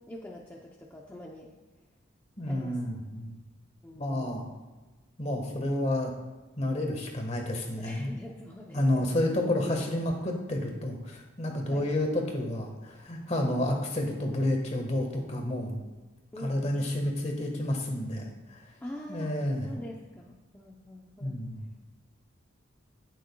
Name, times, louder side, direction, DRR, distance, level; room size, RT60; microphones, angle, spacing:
voice 1, 0.1-1.5 2.5-2.8 3.8-4.5 7.8-9.2 11.7-11.9 16.3-16.9 18.8-19.3 19.6-21.4, left 1 dB, 10° left, -3 dB, 0.6 m, -44 dB
voice 2, 2.4-3.4 4.0-4.5 5.2-6.1 6.6-8.1 8.7-15.8 16.4-18.6 19.1-19.7 21.2-21.7, left 1 dB, 30° left, 2 dB, 1.4 m, -30 dB
18.0 x 6.3 x 2.3 m, 1.2 s
head